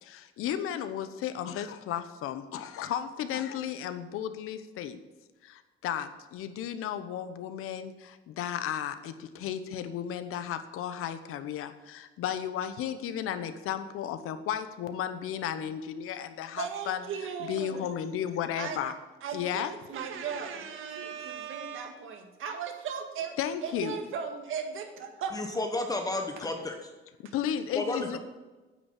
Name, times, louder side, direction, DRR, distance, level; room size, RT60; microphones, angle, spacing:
voice 1, 0.0-5.0 5.4-17.0 17.5-18.9 19.3-19.7 23.4-24.0 27.3-28.2, left 9 dB, 90° left, 10 dB, 1.0 m, -34 dB
voice 2, 16.6-17.9 18.6-18.8 19.2-25.4, right 6 dB, 70° right, 5 dB, 1.8 m, -37 dB
voice 3, 25.3-26.8 27.7-28.2, left 2 dB, 15° left, 4 dB, 1.1 m, -31 dB
9.5 x 8.2 x 7.3 m, 1.2 s
cardioid pair, 145°, 21 cm